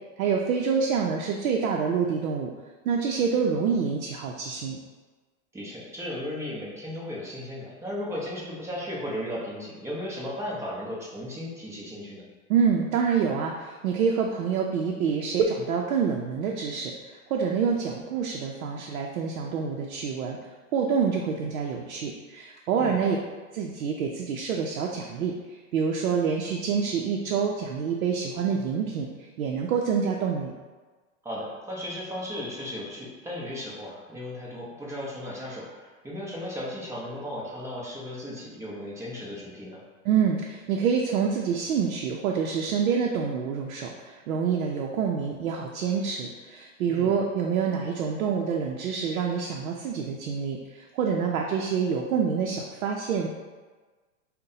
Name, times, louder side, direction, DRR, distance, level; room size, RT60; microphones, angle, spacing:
voice 1, 0.2-2.5 2.8-4.8 12.5-20.4 20.7-23.2 23.5-30.5 40.0-53.3, right 6 dB, 80° right, 0 dB, 0.6 m, -27 dB
voice 2, 5.5-12.2 22.7-23.0 31.2-39.8 46.9-47.2, left 1 dB, 5° right, -5 dB, 0.6 m, -35 dB
5.3 x 2.2 x 2.7 m, 1.3 s
hypercardioid pair, 130°, 41 cm